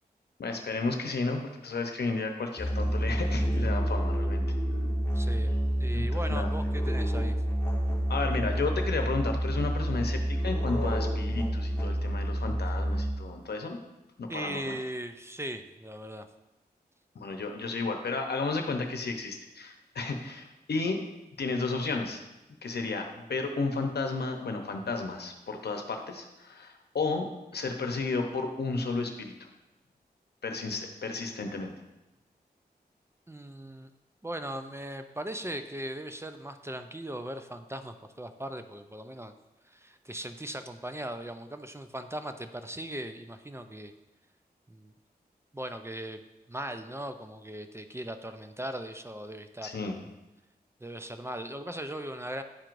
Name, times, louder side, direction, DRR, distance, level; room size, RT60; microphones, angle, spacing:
voice 1, 0.4-4.4 5.9-6.5 8.1-13.8 14.2-14.8 17.1-21.0 21.4-22.2 22.6-27.2 27.5-29.3 30.4-31.7 49.6-50.0, left 3 dB, 75° left, 4 dB, 0.8 m, -32 dB
Musical instrument, 2.6-13.4, equal, 15° left, 1.5 m, -28 dB
voice 2, 5.1-7.4 14.3-16.3 33.3-33.9 34.2-39.3 39.6-43.9 44.7-44.9 45.5-46.2 46.5-49.8 50.8-52.4, right 1 dB, 15° right, 8 dB, 0.5 m, -39 dB
9.8 x 4.5 x 2.6 m, 1.0 s
cardioid pair, 45°, 17 cm